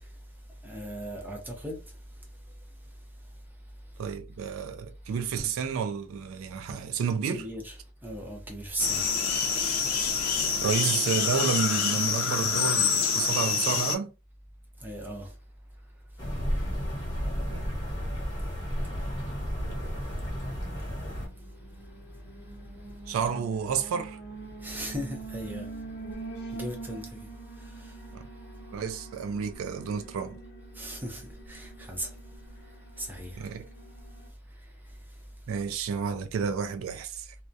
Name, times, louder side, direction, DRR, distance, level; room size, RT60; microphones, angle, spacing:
voice 1, 0.6-1.8 7.2-7.8 8.0-9.0 14.8-15.3 24.6-25.7 26.5-27.1 30.8-31.2 31.5-32.1 33.0-33.4, equal, 10° right, 0.6 m, -36 dB
voice 2, 4.0-7.4 10.6-14.1 17.5-17.7 19.6-20.1 23.1-24.2 28.1-28.2 28.7-30.4 33.4-33.6 35.5-37.3, right 6 dB, 75° right, 0.3 m, -31 dB
sound 1, 8.8-14.0, left 6 dB, 85° left, 0.5 m, -26 dB
sound 2, 16.2-21.3, equal, 20° left, 1.0 m, -32 dB
Alarm, 20.9-34.3, right 3 dB, 55° left, 0.8 m, -45 dB
2.3 x 2.1 x 2.6 m
head